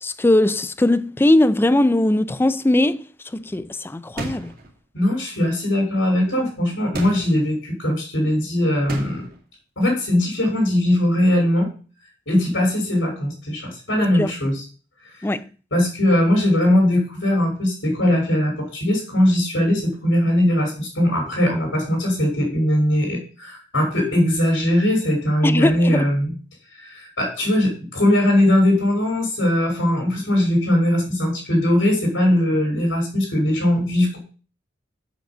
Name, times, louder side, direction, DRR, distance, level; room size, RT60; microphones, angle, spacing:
voice 1, 0.0-3.0 3.3-4.5 14.0-14.3 15.2-15.4 25.4-26.0, left 1 dB, 10° left, 0.3 m, -19 dB
sound 1, 4.2-4.7 6.9-7.4 8.9-9.4, right 2 dB, 45° right, 2.1 m, -31 dB
voice 2, 4.9-9.3 9.8-11.7 12.3-14.6 15.0-15.3 15.7-26.3 26.8-34.2, left 1 dB, 80° left, 3.0 m, -20 dB
7.3 x 5.3 x 6.1 m
head